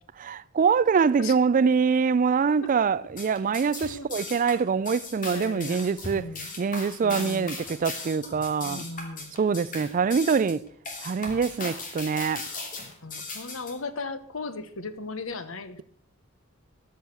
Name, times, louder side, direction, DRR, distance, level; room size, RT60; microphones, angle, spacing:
voice 1, 0.2-6.3 6.6-8.9 9.4-10.6 11.0-12.4, right 5 dB, 40° right, 0.4 m, -24 dB
sound 1, 3.1-13.7, left 3 dB, 40° left, 2.7 m, -37 dB
voice 2, 5.2-6.5 7.0-7.5 8.6-9.3 9.7-10.0 13.0-15.8, left 3 dB, 75° left, 1.0 m, -37 dB
13.5 x 6.4 x 6.9 m
head